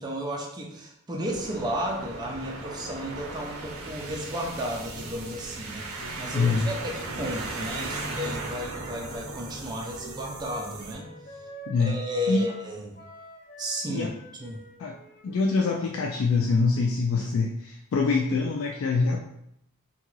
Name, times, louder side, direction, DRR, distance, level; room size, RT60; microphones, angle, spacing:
voice 1, 0.0-11.1 11.8-13.0 13.6-14.1 14.4-14.6, equal, 20° right, -1 dB, 0.4 m, -33 dB
sound 1, 1.3-10.9, right 3 dB, 70° right, 0.5 m, -38 dB
Piano, 5.0-11.7, left 1 dB, 80° left, 1.0 m, -46 dB
voice 2, 6.3-6.7 11.7-12.0 12.3-12.5 13.9-14.1 14.8-15.0 15.2-19.2, left 4 dB, 65° left, 0 dB, 0.3 m, -25 dB
Wind instrument woodwind instrument, 8.7-12.7 12.9-16.9, right 1 dB, 40° left, 0.9 m, -48 dB
2.8 x 2.4 x 3.0 m, 0.77 s
head